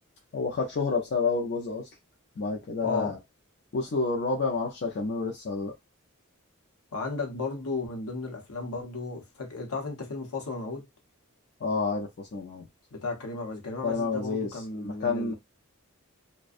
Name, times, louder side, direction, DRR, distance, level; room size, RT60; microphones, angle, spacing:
voice 1, 0.3-1.9 2.4-3.2 3.7-5.7 11.6-12.7 13.8-15.3, left 4 dB, 50° left, 0.5 m, -29 dB
voice 2, 2.8-3.2 6.9-10.9 12.9-15.3, left 3 dB, 80° left, 0.8 m, -34 dB
2.4 x 2.2 x 2.4 m
head